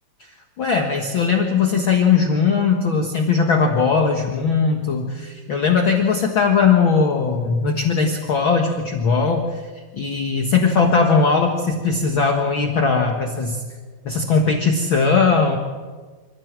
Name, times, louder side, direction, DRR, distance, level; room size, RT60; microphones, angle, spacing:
voice 1, 0.2-13.6 14.0-15.6, left 5 dB, 55° left, 2 dB, 1.5 m, -19 dB
26.5 x 15.5 x 7.6 m, 1.4 s
omnidirectional pair, 4.4 m